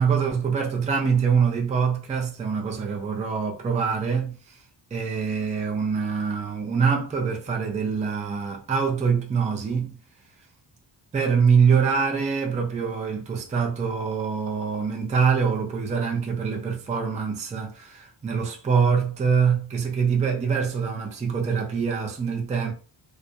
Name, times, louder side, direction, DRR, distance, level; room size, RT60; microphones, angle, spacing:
voice 1, 0.0-4.6 4.9-9.9 11.1-22.7, right 6 dB, 15° right, 0.4 m, -24 dB
2.3 x 2.0 x 2.6 m
cardioid pair, 120°, 47 cm